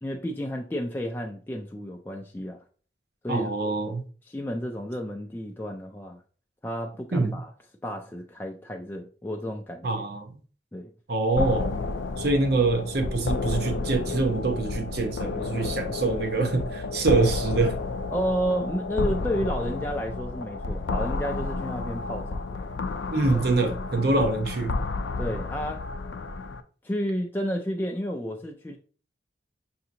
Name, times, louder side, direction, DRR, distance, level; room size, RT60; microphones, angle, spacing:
voice 1, 0.0-2.6 3.2-4.0 4.3-6.2 6.6-7.5 7.8-9.9 10.7-10.9 18.1-22.6 23.3-23.4 25.2-25.8 26.8-28.8, equal, 10° left, 0.3 m, -31 dB
voice 2, 3.3-4.0 7.1-7.4 9.8-10.3 11.1-11.8 12.2-17.8 23.1-24.8, right 3 dB, 60° right, 0.8 m, -25 dB
sound 1, 11.4-26.6, left 3 dB, 75° left, 0.4 m, -31 dB
5.8 x 2.8 x 2.6 m
head